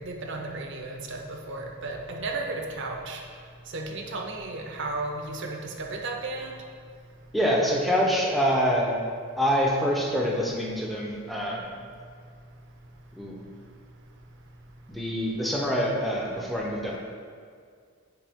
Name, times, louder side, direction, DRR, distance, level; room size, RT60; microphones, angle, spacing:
voice 1, 0.0-3.2 3.7-6.6, right 2 dB, 55° right, 1 dB, 0.7 m, -34 dB
voice 2, 7.3-8.9 9.4-11.8 13.2-13.4 14.9-17.0, equal, ahead, -3 dB, 0.7 m, -26 dB
9.8 x 3.3 x 3.5 m, 2.1 s
head